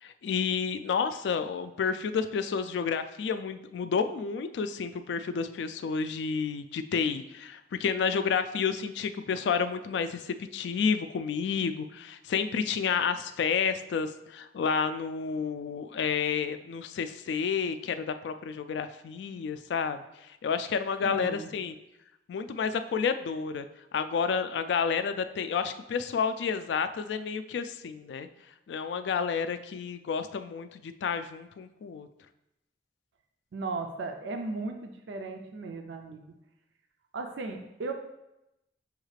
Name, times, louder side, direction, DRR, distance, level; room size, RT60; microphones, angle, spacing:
voice 1, 0.0-20.0 20.4-21.7 22.3-23.7 23.9-28.3 28.7-32.1, left 6 dB, 70° left, 10 dB, 0.3 m, -30 dB
voice 2, 21.0-21.5 33.5-36.2 37.1-37.9, right 3 dB, 90° right, 4 dB, 0.4 m, -36 dB
6.3 x 2.4 x 3.2 m, 0.90 s
head